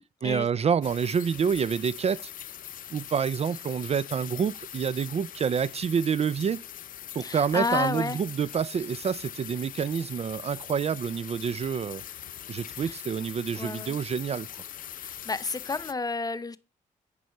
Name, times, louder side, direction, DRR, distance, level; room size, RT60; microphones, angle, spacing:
voice 1, 0.2-2.3 2.9-6.6 7.1-12.0 12.5-14.5, right 7 dB, 45° right, 0.4 m, -28 dB
sound 1, 0.8-15.9, left 10 dB, 65° left, 0.5 m, -42 dB
voice 2, 7.2-8.2 12.8-13.0 13.6-14.0 14.9-16.6, left 3 dB, 25° left, 0.6 m, -31 dB
9.2 x 5.4 x 4.5 m
cardioid pair, 70°, 15 cm